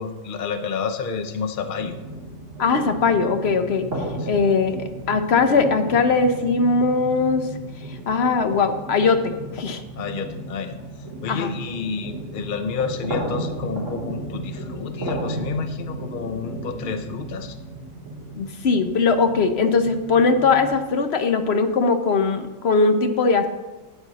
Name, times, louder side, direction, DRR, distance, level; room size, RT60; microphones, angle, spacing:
voice 1, 0.0-1.9 4.2-4.3 10.0-10.8 11.2-17.6, left 5 dB, 90° left, 8 dB, 0.4 m, -30 dB
sound 1, 1.6-20.7, right 1 dB, 45° right, 3.4 m, -34 dB
voice 2, 2.6-3.9 4.3-4.8 5.1-7.4 8.1-9.2 9.5-9.8 11.3-11.5 18.3-23.5, left 4 dB, 55° left, 8 dB, 0.7 m, -20 dB
12.5 x 9.1 x 4.0 m, 1.2 s
omnidirectional pair, 1.9 m